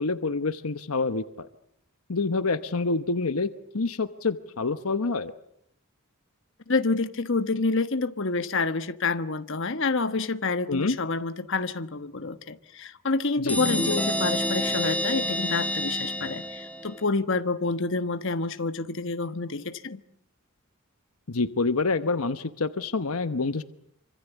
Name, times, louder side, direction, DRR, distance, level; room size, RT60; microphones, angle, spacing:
voice 1, 0.0-1.5 2.1-5.3 10.7-11.0 13.4-13.6 21.3-23.6, left 3 dB, 75° left, 1.0 m, -27 dB
voice 2, 6.7-20.0, left 3 dB, 55° left, 1.2 m, -28 dB
sound 1, 13.5-17.0, equal, 5° left, 1.5 m, -28 dB
26.5 x 25.5 x 8.1 m
head